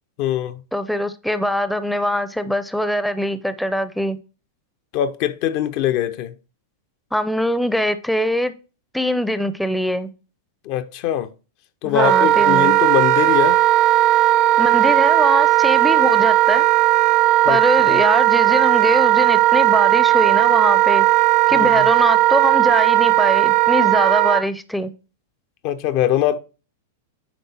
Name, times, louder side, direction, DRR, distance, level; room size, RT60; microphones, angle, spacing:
voice 1, 0.2-0.6 4.9-6.3 10.6-11.3 11.8-13.6 17.4-18.0 21.5-21.9 25.6-26.4, left 11 dB, 50° left, 0.6 m, -22 dB
voice 2, 0.7-4.2 7.1-8.5 8.9-10.1 11.8-12.8 14.6-16.6 17.5-21.1 21.5-24.9, left 1 dB, ahead, 0.5 m, -22 dB
Wind instrument woodwind instrument, 12.0-24.4, right 16 dB, 45° right, 0.5 m, -16 dB
9.4 x 3.4 x 4.3 m
hypercardioid pair, 110°, 0 cm